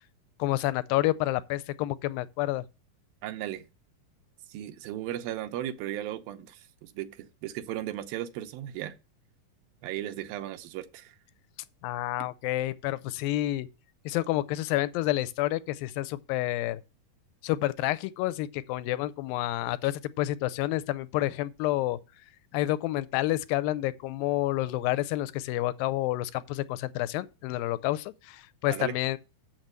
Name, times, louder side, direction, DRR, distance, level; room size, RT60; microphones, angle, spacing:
voice 1, 0.4-2.6 11.8-13.7 14.1-16.8 17.4-22.0 22.5-29.2, left 16 dB, 90° left, 2.4 m, -29 dB
voice 2, 3.2-3.7 4.5-9.0 9.8-11.2 28.7-29.0, right 12 dB, 90° right, 2.6 m, -36 dB
7.5 x 6.0 x 6.6 m
omnidirectional pair, 4.0 m